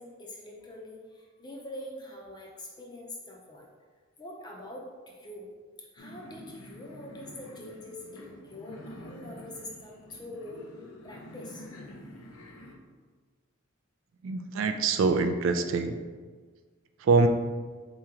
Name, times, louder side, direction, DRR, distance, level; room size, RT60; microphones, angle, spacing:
voice 1, 0.0-3.6 4.2-5.5 5.9-10.6 11.0-11.7, left 1 dB, 20° left, -1 dB, 0.7 m, -44 dB
sound 1, 6.0-12.7, left 1 dB, 85° left, 0.6 m, -47 dB
voice 2, 14.2-16.0 17.0-17.3, right 4 dB, 65° right, 7 dB, 0.3 m, -24 dB
4.2 x 3.0 x 3.7 m, 1.5 s
head